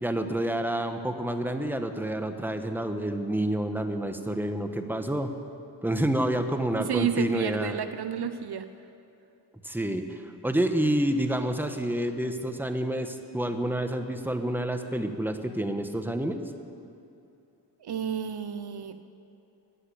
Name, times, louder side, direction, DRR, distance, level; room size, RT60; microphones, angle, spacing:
voice 1, 0.0-5.4 5.8-7.8 9.6-16.4, right 1 dB, 5° right, 6 dB, 1.2 m, -28 dB
voice 2, 6.8-8.7 17.8-19.0, right 8 dB, 60° right, 11 dB, 0.7 m, -31 dB
15.0 x 10.0 x 8.4 m, 2.7 s
cardioid pair, 55°, 44 cm